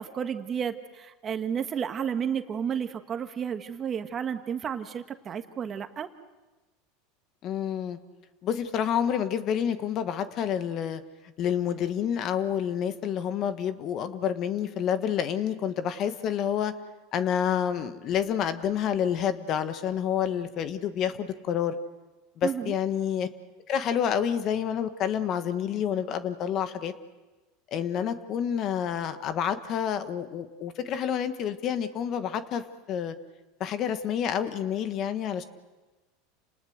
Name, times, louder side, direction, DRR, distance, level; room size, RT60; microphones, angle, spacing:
voice 1, 0.0-6.1 22.4-22.7, right 7 dB, 30° right, 8 dB, 1.5 m, -32 dB
voice 2, 7.4-8.0 8.4-11.0 11.4-16.7 17.1-21.7 22.4-23.3 23.7-26.9 27.7-33.1 33.6-35.4, left 8 dB, 45° left, 11 dB, 1.4 m, -28 dB
29.5 x 19.5 x 6.5 m, 1.2 s
supercardioid pair, 110°, 0 cm